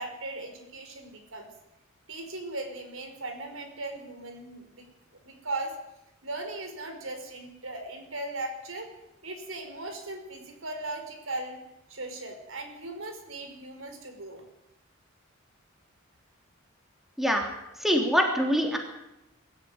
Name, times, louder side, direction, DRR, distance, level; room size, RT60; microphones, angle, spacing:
voice 1, 0.0-1.5 2.1-4.8 5.2-5.7 6.2-8.9 9.2-11.6 11.9-14.4, right 2 dB, 80° right, 5 dB, 5.0 m, -38 dB
voice 2, 17.2-17.5 17.8-18.8, equal, ahead, 2 dB, 3.2 m, -24 dB
22.5 x 13.0 x 9.7 m, 0.89 s
head